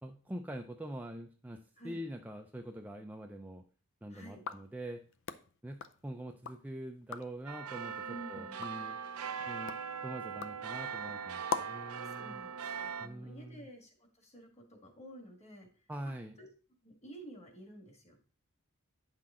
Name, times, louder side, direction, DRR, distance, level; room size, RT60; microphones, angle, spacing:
voice 1, 0.0-3.6 4.0-5.0 5.6-9.0 9.5-9.8 10.0-12.4 13.0-13.7 15.9-16.4, right 1 dB, 10° right, 3 dB, 0.5 m, -44 dB
voice 2, 4.1-4.4 8.0-8.6 12.0-15.7 16.0-16.5 16.8-18.2, right 1 dB, 30° left, 4 dB, 1.7 m, -51 dB
sound 1, 4.3-6.6 7.0-7.4 7.9-11.9, left 6 dB, 60° left, 0.6 m, -44 dB
sound 2, 7.5-13.1, right 7 dB, 85° right, 0.7 m, -40 dB
8.9 x 5.9 x 3.7 m, 0.39 s
head